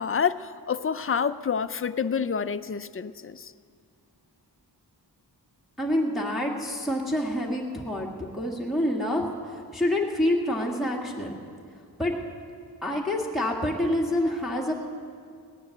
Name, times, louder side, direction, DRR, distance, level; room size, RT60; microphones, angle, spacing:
voice 1, 0.0-3.5, left 6 dB, 35° left, 0.5 m, -28 dB
voice 2, 5.8-11.3 12.0-12.1 12.8-14.7, left 1 dB, ahead, 1.7 m, -27 dB
17.5 x 10.5 x 7.8 m
wide cardioid pair, 95°, 41 cm